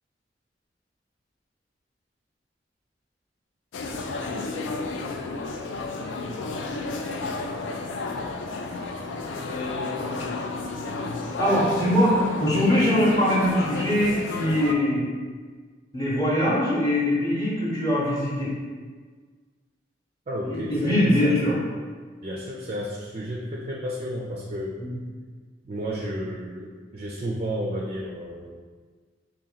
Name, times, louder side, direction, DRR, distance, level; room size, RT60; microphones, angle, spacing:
sound 1, 3.7-14.7, left 3 dB, 85° left, 0.4 m, -32 dB
voice 1, 11.4-15.0 15.9-18.5 20.4-21.6 24.8-24.9, left 1 dB, 20° left, -7 dB, 0.9 m, -22 dB
voice 2, 20.3-21.4 22.2-25.1 25.6-28.6, equal, 35° right, -3 dB, 0.4 m, -32 dB
2.9 x 2.9 x 3.9 m, 1.5 s
head